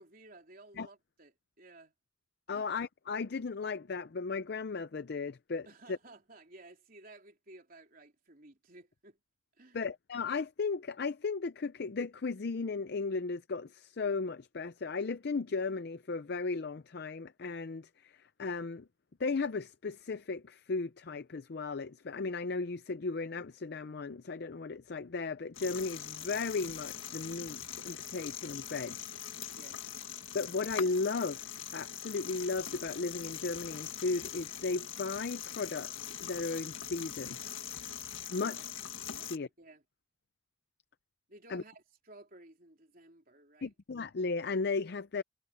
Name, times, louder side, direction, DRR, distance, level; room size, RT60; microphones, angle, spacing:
voice 1, 0.0-1.9 2.5-2.7 5.7-9.2 9.6-9.9 29.6-29.9 38.3-38.6 39.1-39.8 41.3-43.7, right 2 dB, 45° right, 3.7 m, -56 dB
voice 2, 2.5-6.0 9.7-18.9 19.2-29.1 30.3-31.4 31.7-37.4 38.3-38.6 39.3-39.5 41.5-41.6 43.6-45.2, left 4 dB, 55° left, 0.5 m, -35 dB
sound 1, 25.5-39.4, left 9 dB, 80° left, 1.8 m, -42 dB
head